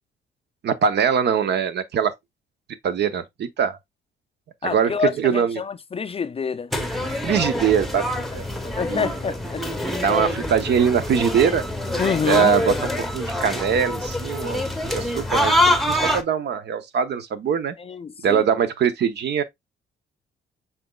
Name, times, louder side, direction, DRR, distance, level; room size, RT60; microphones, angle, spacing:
voice 1, 0.6-2.1 2.8-3.8 4.6-5.6 7.2-8.5 8.9-9.1 10.0-11.6 12.3-15.5 15.9-17.8 18.2-19.4, right 7 dB, 60° right, 0.7 m, -22 dB
voice 2, 4.6-6.7 8.3-8.4 8.8-9.6 12.0-12.5 17.8-18.4, left 6 dB, 30° left, 0.4 m, -27 dB
sound 1, 6.7-16.2, left 1 dB, ahead, 0.8 m, -25 dB
5.9 x 4.0 x 2.2 m
cardioid pair, 90°, 20 cm